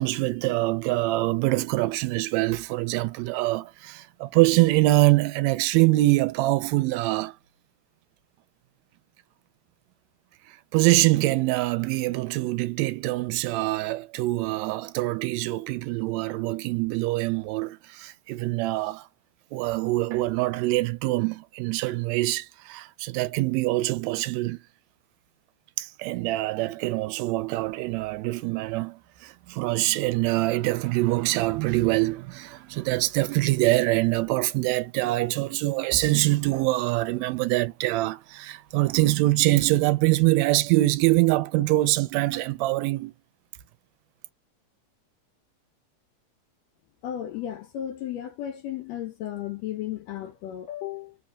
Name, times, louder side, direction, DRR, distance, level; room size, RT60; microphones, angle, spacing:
voice 1, 0.0-7.3 10.7-19.1 19.5-24.6 25.8-43.1, right 19 dB, 80° right, 1.7 m, -24 dB
voice 2, 47.0-51.2, left 11 dB, 80° left, 1.6 m, -34 dB
4.2 x 3.3 x 2.3 m
omnidirectional pair, 3.5 m